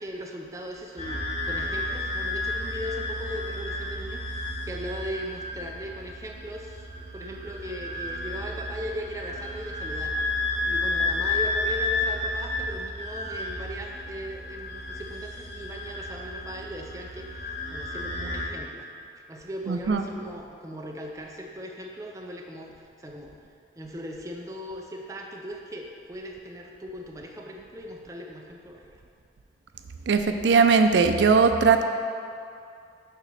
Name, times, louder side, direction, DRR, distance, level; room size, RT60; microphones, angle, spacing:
voice 1, 0.0-10.3 10.6-17.3 17.7-18.8 19.3-23.3 23.7-28.9, equal, 20° right, 0 dB, 0.5 m, -38 dB
sound 1, 1.0-18.4, left 2 dB, 35° left, 1.0 m, -32 dB
voice 2, 19.7-20.0 30.1-31.8, right 5 dB, 90° right, 7 dB, 0.4 m, -19 dB
6.8 x 3.0 x 5.7 m, 2.6 s
head